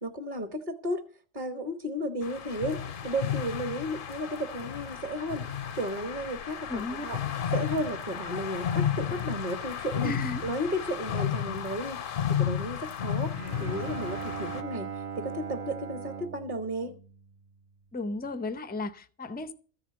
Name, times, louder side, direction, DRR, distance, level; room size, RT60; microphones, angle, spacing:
voice 1, 0.0-1.0 1.3-5.5 5.7-7.2 7.5-10.1 10.4-12.0 12.3-13.3 13.6-16.9, equal, 40° right, 1.2 m, -33 dB
sound 1, 2.2-14.6, left 9 dB, 55° left, 0.7 m, -33 dB
voice 2, 6.7-7.1 10.0-10.4 17.9-19.5, left 2 dB, 10° left, 0.4 m, -34 dB
Bowed string instrument, 13.3-17.7, right 7 dB, 60° right, 1.2 m, -39 dB
14.0 x 4.9 x 8.6 m
omnidirectional pair, 1.3 m